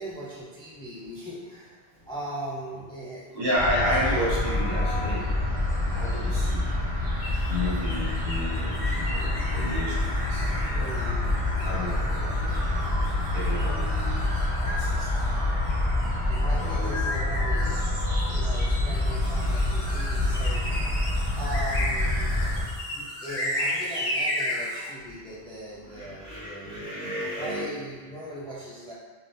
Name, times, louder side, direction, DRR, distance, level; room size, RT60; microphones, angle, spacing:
voice 1, 0.0-1.7 2.1-3.3 10.6-11.2 16.3-17.8 18.3-21.0 21.4-22.3 22.9-26.8 27.4-28.9, right 1 dB, 5° left, -6 dB, 0.4 m, -39 dB
voice 2, 3.3-5.2 5.9-6.6 7.5-10.9 11.2-11.3 11.6-12.5 13.3-14.2 14.6-15.4 16.6-17.1 17.5-17.7 25.8-27.7, left 1 dB, 60° right, -9 dB, 1.5 m, -31 dB
sound 1, 3.5-22.6, left 1 dB, 45° right, 1.6 m, -27 dB
sound 2, 7.2-24.9, left 1 dB, 50° left, 0.9 m, -35 dB
3.7 x 2.4 x 3.8 m, 1.4 s
omnidirectional pair, 1.1 m